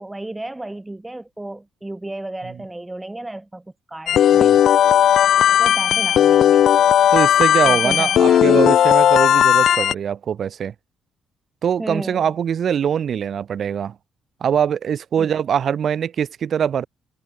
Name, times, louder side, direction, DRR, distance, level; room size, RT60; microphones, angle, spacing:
voice 1, 0.0-4.6 5.6-6.6 7.7-8.6 11.8-12.3 15.2-15.3, right 2 dB, 10° right, 2.6 m, -32 dB
sound 1, 4.1-9.9, left 10 dB, 70° left, 0.5 m, -15 dB
voice 2, 7.1-10.7 11.6-13.9 14.4-16.9, right 8 dB, 55° right, 1.5 m, -22 dB
cardioid pair, 90°, 0 cm